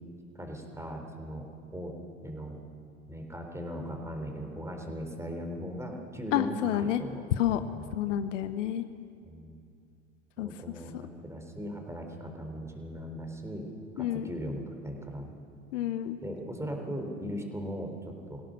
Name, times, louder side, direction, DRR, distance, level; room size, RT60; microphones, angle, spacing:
voice 1, 0.3-1.5 1.7-1.9 2.2-2.6 3.1-7.2 7.7-7.9 9.2-9.6 10.4-13.7 14.0-15.3 16.2-18.4, equal, 5° right, 3 dB, 3.9 m, -38 dB
voice 2, 6.3-7.0 7.4-7.6 7.9-8.8 10.4-10.5 14.0-14.3 15.7-16.2, left 11 dB, 65° left, 11 dB, 1.0 m, -29 dB
24.0 x 17.0 x 6.5 m, 2.5 s
figure-of-eight pair, 75°, 39 cm